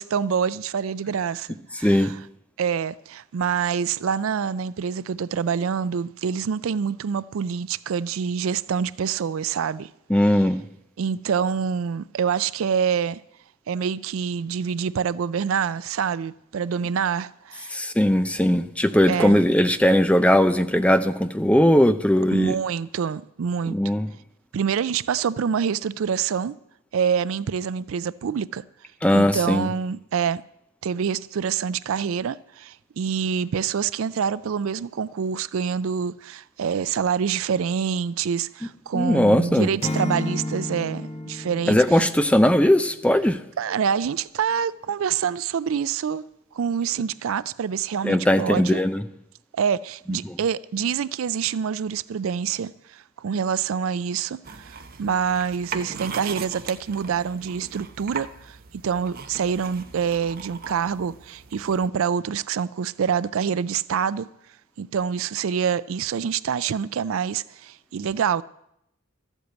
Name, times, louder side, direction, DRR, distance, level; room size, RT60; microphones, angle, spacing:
voice 1, 0.0-1.5 1.8-2.2 2.6-9.9 11.0-13.2 13.7-17.8 19.1-19.5 22.3-23.8 24.5-26.6 26.9-28.6 29.1-30.4 30.8-42.0 43.6-46.2 46.5-48.8 49.5-58.6 58.8-64.3 64.8-68.4, right 7 dB, 70° right, 0.4 m, -26 dB
voice 2, 1.8-2.1 10.1-10.6 17.7-22.5 23.6-24.1 29.0-29.7 38.9-39.7 41.7-43.4 48.0-49.0 50.1-50.4, left 1 dB, 5° left, 0.6 m, -19 dB
Acoustic guitar / Strum, 39.8-42.9, left 1 dB, 30° left, 1.0 m, -31 dB
sound 1, 54.4-61.9, right 5 dB, 45° right, 0.9 m, -39 dB
13.5 x 8.1 x 8.1 m
head